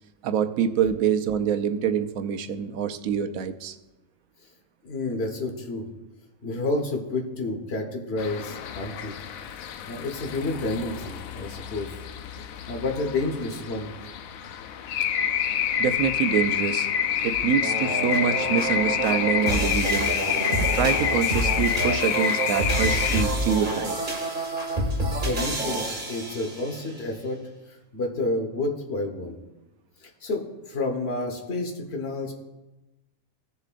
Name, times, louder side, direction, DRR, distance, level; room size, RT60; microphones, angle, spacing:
voice 1, 0.2-3.8 12.4-12.5 15.8-16.9 17.2-20.1 20.6-24.0, right 8 dB, 90° right, 9 dB, 1.1 m, -26 dB
voice 2, 4.8-5.9 6.4-9.1 9.9-12.0 12.7-13.9 24.9-27.4 27.7-29.4 30.0-32.3, left 2 dB, 50° left, 3 dB, 1.5 m, -30 dB
sound 1, 8.2-23.2, left 8 dB, 90° left, 1.0 m, -28 dB
sound 2, 17.6-26.8, right 1 dB, 40° right, 1.6 m, -28 dB
17.0 x 6.9 x 2.5 m, 1.0 s
omnidirectional pair, 1.4 m